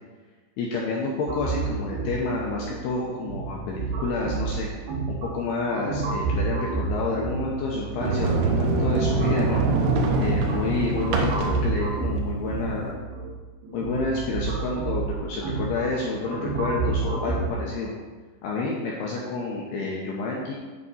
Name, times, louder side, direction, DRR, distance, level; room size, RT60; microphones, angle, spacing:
voice 1, 0.6-4.7 5.1-9.6 10.2-13.0 13.7-17.9 18.4-20.5, left 3 dB, 85° left, -3 dB, 2.3 m, -29 dB
sound 1, 1.3-17.5, right 4 dB, 75° right, 2.3 m, -30 dB
Sliding door, 8.0-12.9, right 3 dB, 90° right, 3.3 m, -24 dB
8.4 x 5.4 x 4.1 m, 1.3 s
omnidirectional pair, 5.6 m